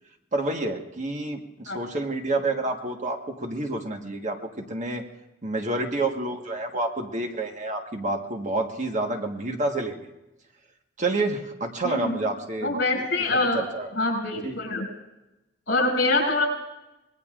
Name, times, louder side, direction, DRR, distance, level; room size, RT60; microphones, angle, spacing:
voice 1, 0.3-4.4 4.7-5.0 5.4-10.1 11.0-13.0 13.3-13.9 14.4-14.5, right 2 dB, 40° right, 3 dB, 1.4 m, -29 dB
voice 2, 11.8-12.2 12.6-13.6 13.9-14.9 15.7-16.5, left 2 dB, 60° left, 2 dB, 6.2 m, -24 dB
25.0 x 20.5 x 2.5 m, 0.97 s
head